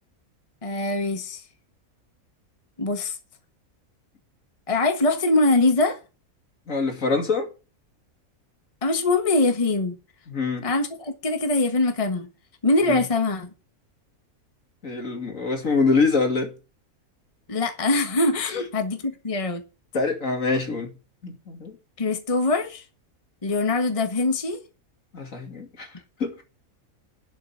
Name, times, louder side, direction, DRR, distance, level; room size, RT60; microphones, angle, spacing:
voice 1, 0.6-1.4 2.8-3.2 4.7-6.0 8.8-9.9 10.6-12.3 12.6-13.5 17.5-19.6 22.0-22.8 23.4-24.6, left 2 dB, 25° left, 1.4 m, -23 dB
voice 2, 6.7-7.5 10.3-10.7 12.9-13.0 14.8-16.5 18.5-18.6 19.9-20.9 21.2-21.8 25.1-25.9 26.2-26.4, left 4 dB, 65° left, 2.9 m, -25 dB
11.5 x 6.0 x 7.2 m
omnidirectional pair, 1.5 m